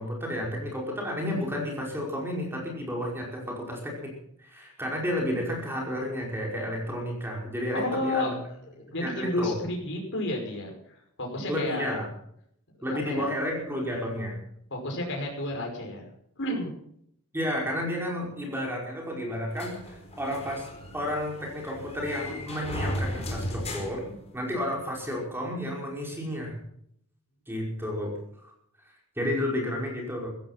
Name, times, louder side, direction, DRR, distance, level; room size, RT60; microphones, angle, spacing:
voice 1, 0.0-4.1 4.4-8.3 9.0-9.5 11.5-12.1 12.8-14.4 17.3-20.7 20.9-26.6 27.5-28.1 28.4-28.5 28.8-30.3, left 1 dB, 10° right, -1 dB, 5.3 m, -31 dB
voice 2, 7.7-8.3 8.7-10.7 11.2-11.9 12.8-13.3 14.7-16.0 16.4-16.7, left 1 dB, 55° left, 0 dB, 5.6 m, -31 dB
sound 1, 19.6-24.8, equal, 30° left, 4.5 m, -36 dB
15.5 x 15.5 x 6.0 m, 0.70 s
head